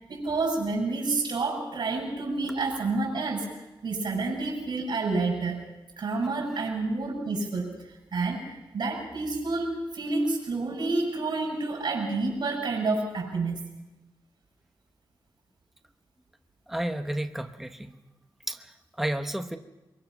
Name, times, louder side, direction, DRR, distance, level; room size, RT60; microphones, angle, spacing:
voice 1, 0.1-3.5 3.8-5.6 6.0-7.7 8.1-13.6, right 3 dB, 65° right, -3 dB, 6.8 m, -29 dB
voice 2, 16.7-17.9 18.5-19.6, right 1 dB, 5° right, 6 dB, 1.0 m, -32 dB
24.5 x 23.5 x 6.0 m, 1.0 s
wide cardioid pair, 175°, 9 cm